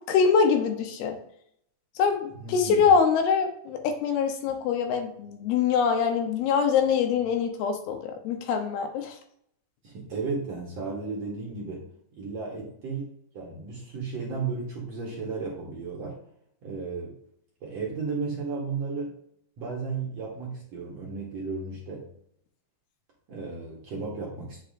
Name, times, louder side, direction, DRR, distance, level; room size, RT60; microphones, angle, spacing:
voice 1, 0.1-1.2 2.0-9.2, left 6 dB, 85° left, 5 dB, 2.9 m, -24 dB
voice 2, 2.3-2.9 9.8-11.9 12.2-16.2 16.6-17.2 17.6-19.2 19.6-22.1 23.3-24.6, right 4 dB, 60° right, -2 dB, 1.9 m, -34 dB
8.2 x 6.8 x 2.6 m, 0.70 s
omnidirectional pair, 4.4 m